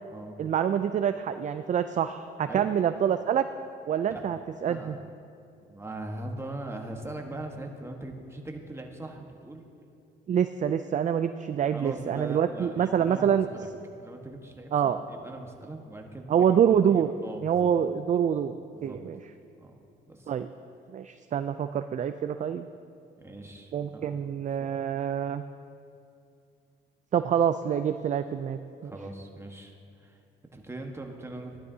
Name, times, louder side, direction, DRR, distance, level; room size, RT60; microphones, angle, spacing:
voice 1, 0.4-3.5 3.9-5.0 10.3-13.5 14.7-15.0 16.3-17.1 17.4-18.5 18.8-19.2 20.3-20.5 20.9-22.7 23.7-25.4 27.1-28.9, right 8 dB, 40° right, 10 dB, 0.4 m, -26 dB
voice 2, 4.1-4.4 4.7-5.2 5.6-9.6 11.7-13.7 14.0-16.6 16.9-17.7 18.7-19.1 19.6-19.8 20.1-20.3 23.2-24.4 28.8-30.2 30.5-31.6, right 2 dB, 15° right, 2 dB, 1.3 m, -41 dB
15.0 x 12.0 x 2.8 m, 2.5 s
cardioid pair, 90°, 20 cm